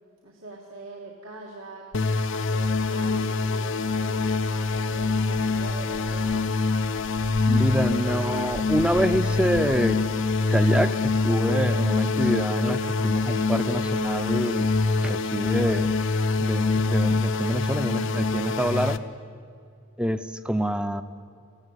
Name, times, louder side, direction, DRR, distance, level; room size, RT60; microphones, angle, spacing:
voice 1, 0.2-1.9 2.4-4.3 4.6-6.6 20.6-20.7, right 3 dB, 70° right, -2 dB, 2.1 m, -43 dB
sound 1, 1.9-19.0, left 3 dB, 60° left, 0.7 m, -25 dB
sound 2, 4.2-10.0, left 1 dB, 85° left, 1.4 m, -43 dB
voice 2, 7.5-10.0 10.5-14.7 15.0-16.0 16.4-19.0 20.0-21.0, equal, 5° right, 11 dB, 0.6 m, -26 dB
19.0 x 15.0 x 9.8 m, 2.4 s
head